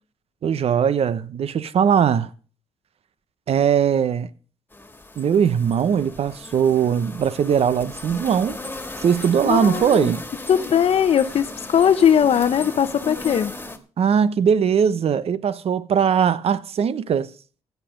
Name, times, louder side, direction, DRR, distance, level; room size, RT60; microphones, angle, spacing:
voice 1, 0.4-2.3 3.5-4.3 5.2-8.6 9.0-10.2 14.0-17.3, right 7 dB, 65° right, 1.0 m, -20 dB
sound 1, 4.7-13.8, left 2 dB, 15° left, 1.9 m, -36 dB
voice 2, 9.5-10.1 10.5-13.5, left 8 dB, 60° left, 0.8 m, -19 dB
14.5 x 8.3 x 5.2 m
cardioid pair, 85°, 11 cm